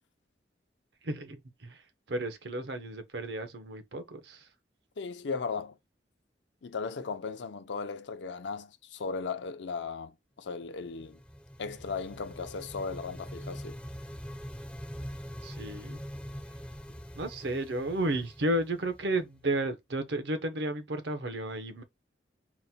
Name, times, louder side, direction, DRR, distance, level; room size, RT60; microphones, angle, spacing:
voice 1, 1.0-4.5 15.4-16.0 17.1-21.8, right 1 dB, 70° right, 0.8 m, -33 dB
voice 2, 5.0-5.8 6.6-11.2 11.6-13.8, left 4 dB, 80° left, 0.5 m, -37 dB
sound 1, 10.7-19.5, equal, 5° left, 0.3 m, -43 dB
4.0 x 2.2 x 4.2 m
head